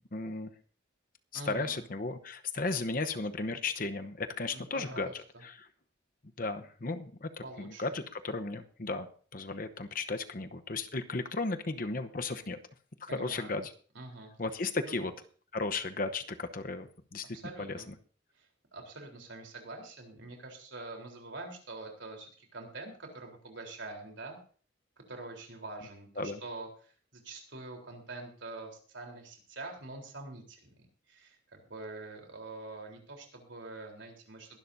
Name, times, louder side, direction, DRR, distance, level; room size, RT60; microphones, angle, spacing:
voice 1, 0.1-0.5 1.3-5.7 6.4-7.3 7.6-12.6 13.0-13.7 14.4-15.1 15.5-17.9 26.2-26.4, left 3 dB, 45° left, 9 dB, 0.9 m, -35 dB
voice 2, 1.3-1.8 4.5-5.4 7.4-7.8 13.1-13.6 14.0-14.3 14.9-15.1 17.3-17.9 18.3-24.4 25.1-30.7 31.1-34.6, right 2 dB, 75° right, 2 dB, 3.8 m, -45 dB
21.5 x 11.5 x 2.7 m, 0.43 s
head